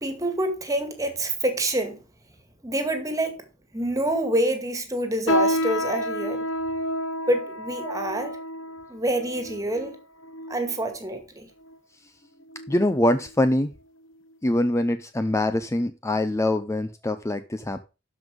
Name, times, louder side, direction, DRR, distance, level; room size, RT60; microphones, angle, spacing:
voice 1, 0.0-2.0 2.6-3.5 3.7-6.5 7.3-8.4 8.9-10.0 10.5-11.5, right 1 dB, 20° right, 2.0 m, -27 dB
sound 1, 5.3-10.9 11.6-11.7 12.5-12.8 13.2-13.3 14.0-14.1, equal, 75° left, 0.9 m, -29 dB
voice 2, 12.7-13.7 14.4-17.9, left 1 dB, 15° left, 0.5 m, -24 dB
12.5 x 5.3 x 5.2 m
head